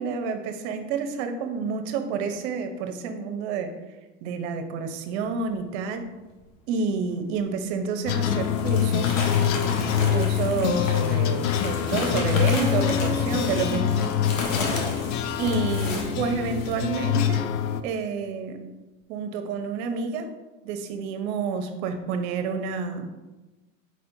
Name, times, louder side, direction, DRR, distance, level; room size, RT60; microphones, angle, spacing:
voice 1, 0.0-3.7 4.2-6.1 6.7-9.2 10.1-14.0 15.4-17.5 17.8-18.6 19.1-20.3 20.6-23.1, right 5 dB, 55° right, 7 dB, 0.7 m, -29 dB
sound 1, 7.5-7.6 8.2-16.9, left 2 dB, 80° left, 1.2 m, -34 dB
sound 2, 8.1-17.8, left 9 dB, 65° left, 0.5 m, -25 dB
sound 3, 12.5-16.4, left 2 dB, 25° left, 1.1 m, -35 dB
4.7 x 4.2 x 2.6 m, 1.1 s
hypercardioid pair, 120°, 39 cm